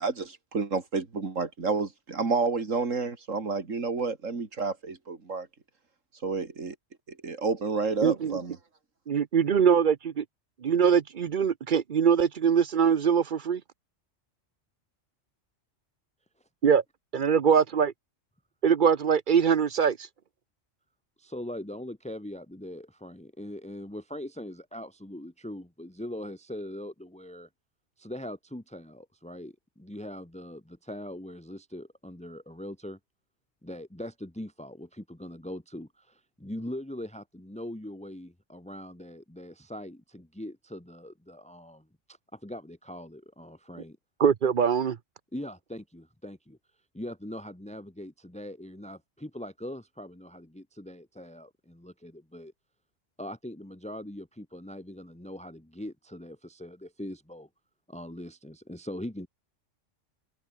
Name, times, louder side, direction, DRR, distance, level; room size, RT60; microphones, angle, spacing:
voice 1, 0.0-5.5 6.2-6.7 7.2-8.6, right 4 dB, 80° right, 2.9 m, -30 dB
voice 2, 8.0-8.4 9.1-10.2 10.6-13.6 16.6-16.8 17.1-17.9 18.6-20.0 44.2-45.0, right 7 dB, 50° right, 0.7 m, -23 dB
voice 3, 21.2-27.5 28.0-33.0 33.6-44.0 45.3-46.6 46.9-52.5 53.2-57.5 57.9-59.3, left 1 dB, 5° left, 1.7 m, -41 dB
omnidirectional pair, 1.3 m